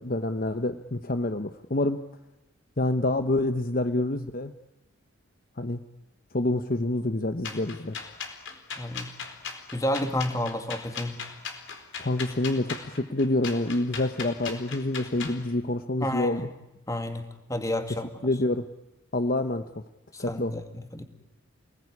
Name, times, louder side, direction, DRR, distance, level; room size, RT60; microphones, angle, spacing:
voice 1, 0.0-2.0 2.8-4.5 5.6-5.8 6.3-8.0 12.0-16.5 18.2-18.7 19.1-19.7 20.2-20.5, left 2 dB, 45° left, 9 dB, 1.0 m, -27 dB
sound 1, 7.4-15.4, left 6 dB, 60° left, 4.2 m, -38 dB
voice 2, 8.8-9.1 9.7-11.1 16.0-16.4 16.9-18.1 20.1-21.0, left 1 dB, 15° left, 7 dB, 2.4 m, -30 dB
29.5 x 20.0 x 9.8 m, 0.99 s
head